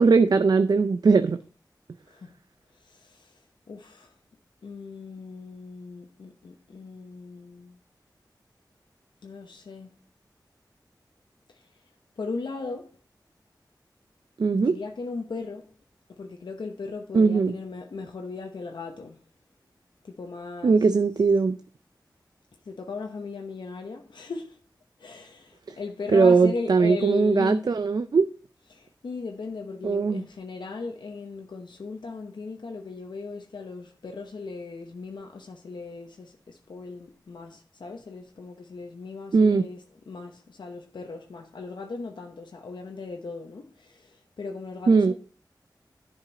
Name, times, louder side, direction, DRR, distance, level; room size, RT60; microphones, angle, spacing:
voice 1, 0.0-1.4 14.4-14.7 17.1-17.5 20.6-21.6 26.1-28.3 29.8-30.2 39.3-39.7 44.9-45.1, right 4 dB, 60° right, 0.4 m, -20 dB
voice 2, 2.0-2.4 2.7-4.1 4.6-7.8 9.2-10.0 11.5-11.7 12.2-13.0 14.5-15.7 16.1-19.2 20.0-20.9 22.6-24.6 25.0-27.8 28.7-45.1, left 4 dB, 90° left, 0.8 m, -37 dB
10.5 x 5.2 x 4.0 m
wide cardioid pair, 80°, 8 cm